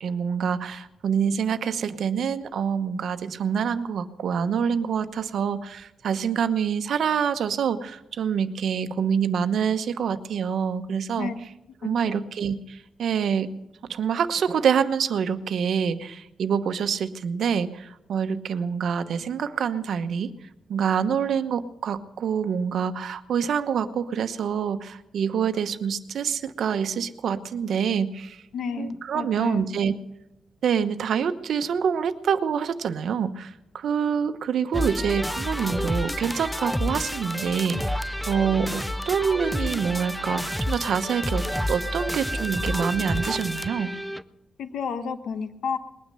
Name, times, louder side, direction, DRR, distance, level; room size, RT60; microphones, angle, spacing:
voice 1, 0.0-11.3 11.8-13.5 13.9-20.3 20.7-28.4 28.8-30.0 30.6-43.9, right 7 dB, 65° right, 11 dB, 1.0 m, -26 dB
voice 2, 11.8-12.2 28.5-29.7 44.6-45.8, left 5 dB, 75° left, 10 dB, 1.1 m, -31 dB
sound 1, 34.7-44.2, equal, 5° left, 0.5 m, -29 dB
20.5 x 9.6 x 6.8 m, 0.89 s
wide cardioid pair, 155°, 0 cm